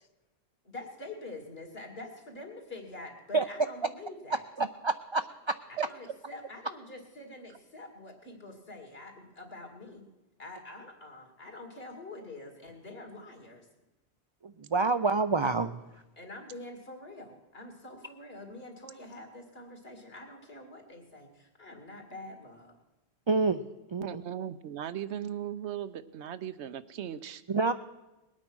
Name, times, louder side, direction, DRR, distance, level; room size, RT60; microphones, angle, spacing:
voice 1, 0.6-4.4 5.7-10.0 10.4-13.7 16.2-22.7, left 2 dB, 60° left, 2 dB, 2.7 m, -46 dB
voice 2, 4.6-5.6 14.4-15.8 23.3-24.2 27.5-27.7, right 3 dB, 50° right, 10 dB, 0.3 m, -28 dB
voice 3, 24.0-27.4, right 10 dB, 85° right, 13 dB, 1.0 m, -37 dB
20.5 x 8.9 x 6.1 m, 1.0 s
omnidirectional pair, 1.1 m